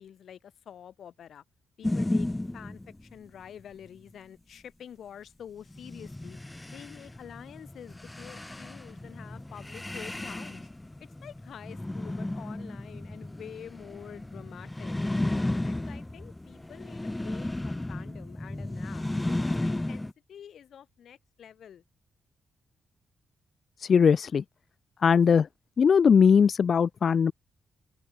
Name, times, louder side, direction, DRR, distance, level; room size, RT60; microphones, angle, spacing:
voice 1, 0.0-1.4 1.8-2.3 2.5-6.4 6.7-10.7 11.2-15.0 15.4-21.8, left 9 dB, 70° left, 1.7 m, -47 dB
sound 1, 1.8-3.1 5.7-20.1, left 1 dB, 10° left, 1.7 m, -34 dB
voice 2, 23.8-24.4 25.0-25.5 25.8-27.3, left 6 dB, 50° left, 0.3 m, -20 dB
open air
cardioid pair, 120°, 0 cm